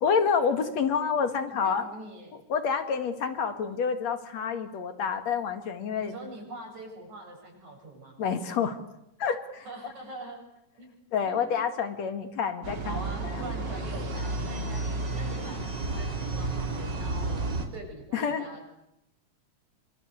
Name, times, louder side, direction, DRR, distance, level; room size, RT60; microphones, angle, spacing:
voice 1, 0.0-1.9 2.5-6.2 8.2-8.8 9.2-9.6 11.1-13.4 18.1-18.4, left 6 dB, 65° left, 9 dB, 3.1 m, -28 dB
voice 2, 1.5-2.4 6.0-8.2 9.7-10.4 10.8-10.9 11.2-11.5 12.9-18.8, right 2 dB, 70° right, 1 dB, 9.5 m, -43 dB
sound 1, 12.6-17.7, right 2 dB, 35° right, 3.7 m, -32 dB
26.5 x 25.5 x 8.3 m, 0.83 s
omnidirectional pair, 3.4 m